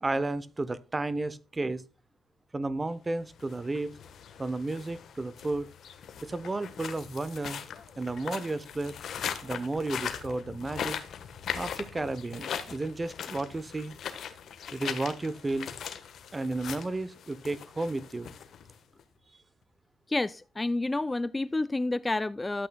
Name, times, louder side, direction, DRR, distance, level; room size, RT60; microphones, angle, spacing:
voice 1, 0.0-1.8 2.5-3.9 4.4-5.7 6.2-7.6 8.0-9.0 9.4-11.0 11.5-13.9 14.7-15.7 16.3-18.3, right 2 dB, 20° right, 0.7 m, -32 dB
sound 1, 3.3-19.0, left 8 dB, 65° left, 1.2 m, -40 dB
voice 2, 20.1-22.7, left 2 dB, 15° left, 0.3 m, -29 dB
12.5 x 8.2 x 2.2 m
cardioid pair, 90°, 0 cm